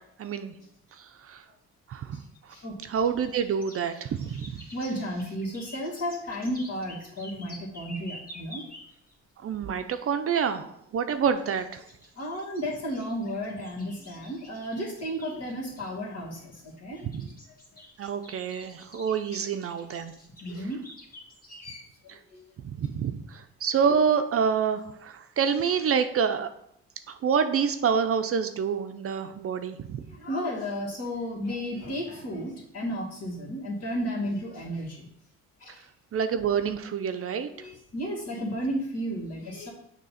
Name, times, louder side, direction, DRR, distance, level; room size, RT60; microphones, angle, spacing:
voice 1, 0.2-0.5 1.0-1.4 1.9-2.2 2.9-4.6 9.4-11.8 17.0-17.3 18.0-20.1 22.1-22.2 22.6-26.5 27.1-30.1 36.1-37.5, right 7 dB, 50° right, 8 dB, 0.5 m, -27 dB
sound 1, 3.0-9.1 11.4-15.9 16.8-21.7, left 1 dB, 30° left, 1.8 m, -49 dB
voice 2, 4.7-8.6 12.2-17.3 17.7-17.8 19.3-19.4 20.4-20.8 21.5-22.4 30.1-35.1 35.6-35.8 37.3-39.7, equal, 55° left, -3 dB, 2.2 m, -33 dB
6.5 x 3.0 x 5.7 m, 0.74 s
cardioid pair, 90°, 30 cm